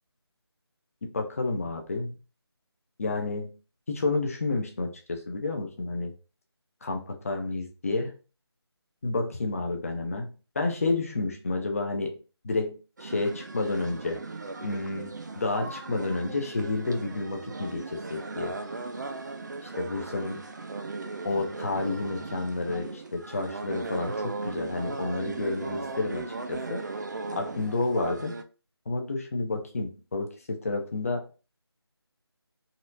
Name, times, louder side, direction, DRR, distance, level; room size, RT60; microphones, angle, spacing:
voice 1, 1.1-2.2 3.0-3.5 3.9-6.1 6.8-8.1 9.0-10.3 10.6-12.1 12.4-12.7 13.0-14.2 14.6-18.6 19.8-20.4 21.2-26.8 27.3-28.3 28.9-31.2, left 3 dB, 35° left, 4 dB, 0.6 m, -30 dB
sound 1, 13.0-28.4, right 3 dB, 45° right, 0.4 m, -37 dB
4.1 x 2.4 x 2.6 m, 0.33 s
figure-of-eight pair, 165°, 14 cm